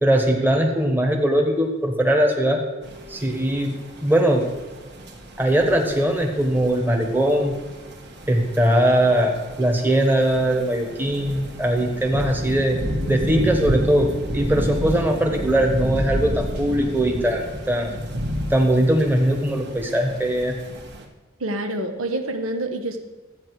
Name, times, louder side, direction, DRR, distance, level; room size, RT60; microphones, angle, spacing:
voice 1, 0.0-2.6 3.1-3.7 4.0-4.5 5.4-7.5 8.3-12.8 13.1-14.1 14.3-17.9 18.5-20.5, right 1 dB, 10° right, 2 dB, 1.2 m, -20 dB
sound 1, 2.8-21.0, equal, 55° right, 1.4 m, -31 dB
voice 2, 21.4-23.0, right 1 dB, 90° right, 6 dB, 1.1 m, -27 dB
13.0 x 8.7 x 4.8 m, 1.3 s
head